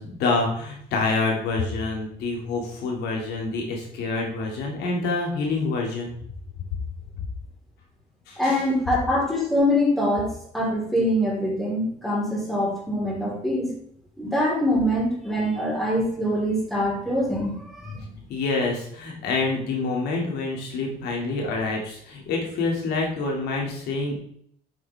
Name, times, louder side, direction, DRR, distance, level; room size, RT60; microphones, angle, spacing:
voice 1, 0.0-6.1 8.3-8.6 18.3-24.1, left 3 dB, 80° left, 0 dB, 2.5 m, -27 dB
voice 2, 8.4-13.7 14.2-18.0, equal, ahead, -4 dB, 4.2 m, -24 dB
9.0 x 7.6 x 3.5 m, 0.65 s
cardioid pair, 110°, 17 cm